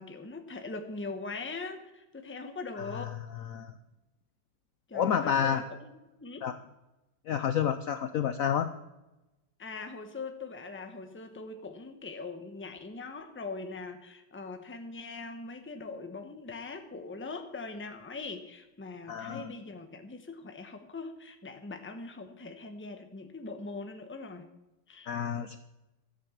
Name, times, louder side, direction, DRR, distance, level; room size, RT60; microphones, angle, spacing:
voice 1, 0.0-3.2 4.9-5.9 6.2-6.5 9.6-24.5 24.9-25.1, left 3 dB, 10° left, 6 dB, 0.8 m, -41 dB
voice 2, 4.9-5.6 6.4-6.5 7.3-8.7 19.1-19.5 25.1-25.6, left 8 dB, 65° left, 10 dB, 0.9 m, -29 dB
13.5 x 8.3 x 7.2 m, 0.97 s
omnidirectional pair, 1.9 m